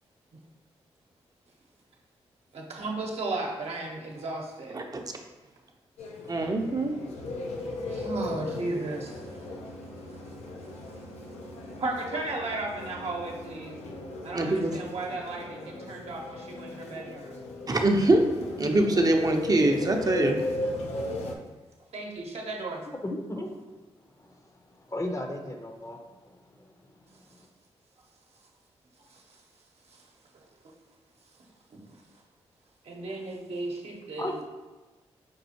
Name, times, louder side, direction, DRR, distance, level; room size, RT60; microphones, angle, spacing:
voice 1, 2.5-4.8 6.4-6.5 7.9-9.3 10.5-10.6 11.8-13.8 14.2-17.4 21.9-22.8 29.1-29.2 29.9-30.0 31.7-31.8 32.8-34.4, right 2 dB, 65° right, -1 dB, 0.8 m, -35 dB
sound 1, 6.0-21.4, left 2 dB, 80° left, 0.5 m, -37 dB
voice 2, 6.3-6.9 14.3-14.8 17.7-18.2 18.6-20.4, right 2 dB, 35° right, 3 dB, 0.6 m, -23 dB
voice 3, 22.9-23.5 24.8-26.0 26.6-26.7 34.2-34.4, left 1 dB, 30° left, 3 dB, 0.6 m, -34 dB
5.3 x 2.4 x 2.8 m, 1.2 s
supercardioid pair, 45°, 11 cm